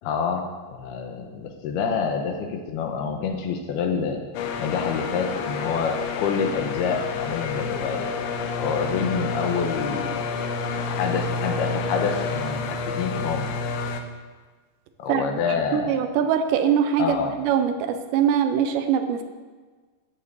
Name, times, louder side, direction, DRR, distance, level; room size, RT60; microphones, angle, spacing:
voice 1, 0.0-0.4 0.7-4.2 4.6-8.1 8.6-10.0 10.7-13.5 15.0-15.9 17.0-17.4, left 6 dB, 75° left, 3 dB, 2.7 m, -27 dB
sound 1, 4.4-14.0, left 4 dB, 90° left, 3.3 m, -29 dB
voice 2, 15.1-19.2, right 8 dB, 80° right, 8 dB, 3.0 m, -23 dB
11.0 x 7.7 x 8.2 m, 1.4 s
omnidirectional pair, 5.1 m